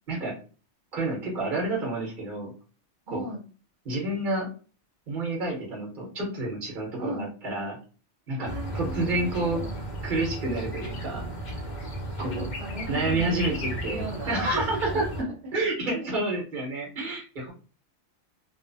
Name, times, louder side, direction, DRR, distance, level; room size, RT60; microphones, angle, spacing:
voice 1, 0.9-2.5 3.1-3.2 3.8-4.5 5.1-7.8 8.3-8.5 8.7-9.6 10.0-11.2 12.2-12.5 12.9-15.0 15.5-17.5, right 2 dB, 45° right, -1 dB, 1.3 m, -29 dB
voice 2, 3.1-3.4 7.0-7.3 8.4-9.8 12.2-15.5, right 1 dB, 70° right, -4 dB, 1.2 m, -37 dB
sound 1, 8.4-15.2, right 1 dB, 50° left, 0.6 m, -34 dB
3.0 x 2.1 x 2.6 m, 0.37 s
omnidirectional pair, 1.2 m